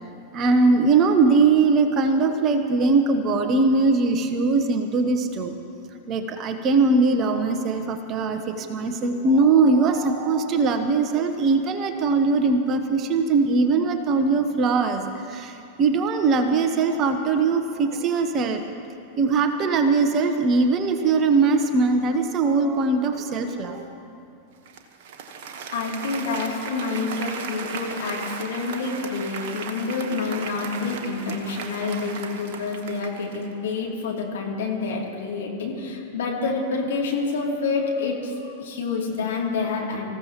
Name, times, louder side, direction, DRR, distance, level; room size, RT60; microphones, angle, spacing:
voice 1, 0.3-5.6 6.1-18.6 19.2-23.9, right 4 dB, 30° right, 6 dB, 1.1 m, -21 dB
Applause, 24.7-33.6, right 5 dB, 50° right, 1.3 m, -36 dB
voice 2, 25.7-40.1, left 4 dB, 60° left, -2 dB, 2.9 m, -28 dB
25.5 x 15.0 x 3.1 m, 2.6 s
figure-of-eight pair, 90°, 0 cm